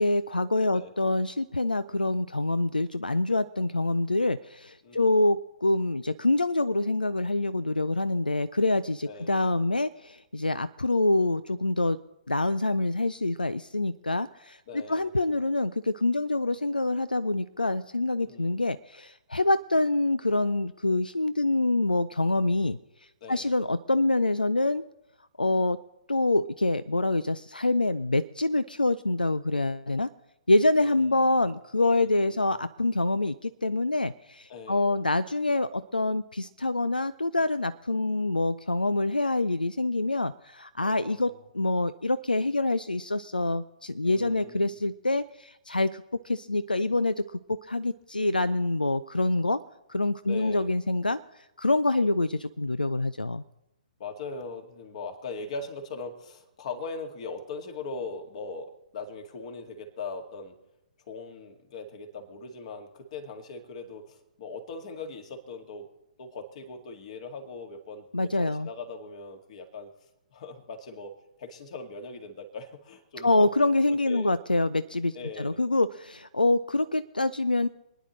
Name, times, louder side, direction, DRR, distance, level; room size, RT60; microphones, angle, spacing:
voice 1, 0.0-12.0 12.3-22.8 23.3-24.8 25.4-25.8 26.1-30.1 30.5-49.6 49.9-51.2 51.6-53.4 68.1-68.7 73.2-77.7, left 2 dB, 90° left, 15 dB, 0.4 m, -26 dB
voice 2, 4.8-5.2 9.0-9.3 14.7-15.1 18.3-18.6 23.2-23.5 30.8-31.5 32.0-32.5 34.5-34.9 40.8-41.4 44.0-44.8 50.2-50.7 54.0-60.6 61.1-65.9 66.2-69.9 70.3-73.5 73.9-74.3 75.1-75.6, left 3 dB, 50° left, 4 dB, 2.2 m, -40 dB
27.5 x 10.0 x 3.2 m, 0.92 s
figure-of-eight pair, 125°, 5 cm